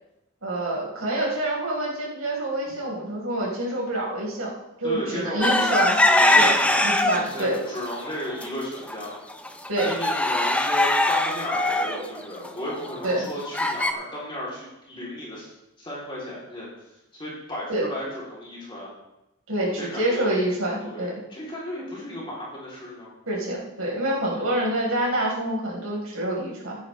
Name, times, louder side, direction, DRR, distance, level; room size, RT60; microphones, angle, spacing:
voice 1, 0.4-4.5 4.8-5.9 6.3-6.5 6.8-7.7 9.7-9.9 13.0-13.3 17.7-17.8 19.5-21.2 23.3-26.8, right 1 dB, 75° right, -4 dB, 4.4 m, -26 dB
voice 2, 4.8-9.2 9.8-15.5 15.8-16.7 17.1-18.9 19.7-20.4 20.8-23.1, equal, 20° left, -6 dB, 3.2 m, -34 dB
sound 1, 5.4-7.4 7.9-8.5 8.9-9.0 9.3-13.9, left 1 dB, 5° left, 0.4 m, -22 dB
15.0 x 10.0 x 3.3 m, 0.90 s
head